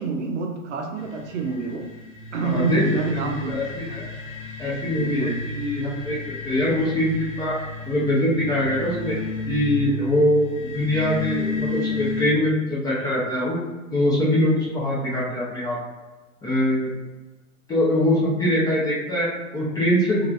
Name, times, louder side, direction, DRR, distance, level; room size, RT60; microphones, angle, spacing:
voice 1, 0.0-1.9 2.3-3.5 4.6-5.4, right 4 dB, 55° right, 3 dB, 0.6 m, -28 dB
sound 1, 1.0-12.3, left 3 dB, 50° left, 1.5 m, -32 dB
voice 2, 2.4-2.8 3.1-4.1 4.6-6.2 6.4-7.6 7.9-9.2 9.5-13.6 13.9-15.8 16.4-16.9 17.7-20.3, left 1 dB, 10° left, -6 dB, 0.5 m, -23 dB
3.2 x 3.0 x 2.5 m, 1.2 s
figure-of-eight pair, 110°, 43 cm